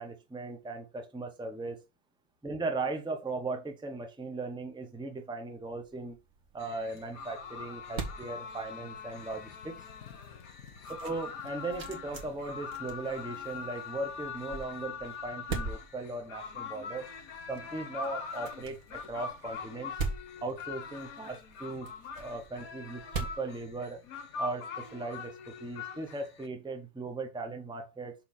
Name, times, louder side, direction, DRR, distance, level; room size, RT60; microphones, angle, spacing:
voice 1, 0.0-1.8 2.4-6.2 6.5-9.7 11.0-17.1 17.5-19.9 20.4-24.0 24.4-28.1, right 3 dB, 5° right, 0.8 m, -38 dB
sound 1, 5.7-24.4, right 4 dB, 50° right, 1.8 m, -43 dB
sound 2, 6.6-26.5, left 5 dB, 55° left, 1.3 m, -43 dB
6.5 x 3.9 x 5.8 m
omnidirectional pair, 2.1 m